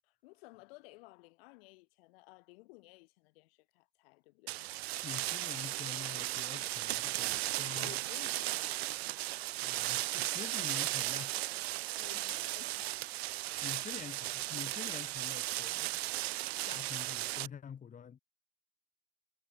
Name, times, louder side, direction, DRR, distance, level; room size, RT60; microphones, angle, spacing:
voice 1, 0.0-4.6 7.8-8.9 11.9-13.2, left 24 dB, 70° left, 6.6 m, -56 dB
sound 1, 4.5-17.5, right 17 dB, 85° right, 1.4 m, -36 dB
voice 2, 5.0-8.0 9.6-12.3 13.6-16.0 16.6-18.2, left 7 dB, 25° left, 2.3 m, -47 dB
supercardioid pair, 115°, 31 cm